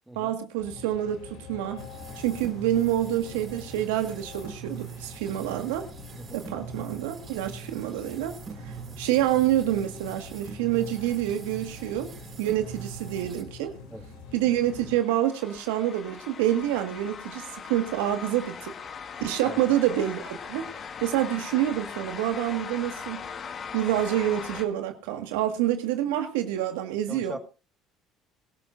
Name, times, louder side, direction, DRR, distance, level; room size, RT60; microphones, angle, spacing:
voice 1, 0.2-1.8 2.2-5.9 6.3-8.4 8.6-12.1 12.4-13.7 14.3-18.7 19.2-20.7 21.0-23.2 23.7-27.4, right 12 dB, 90° right, 1.7 m, -27 dB
sound 1, 0.6-15.0, left 5 dB, 90° left, 4.3 m, -45 dB
sound 2, 1.8-13.4, right 7 dB, 40° right, 5.6 m, -43 dB
sound 3, 14.6-24.6, left 6 dB, 45° left, 1.6 m, -40 dB
voice 2, 27.1-27.4, right 1 dB, 5° right, 1.8 m, -40 dB
23.5 x 13.0 x 2.6 m
supercardioid pair, 85°, 0 cm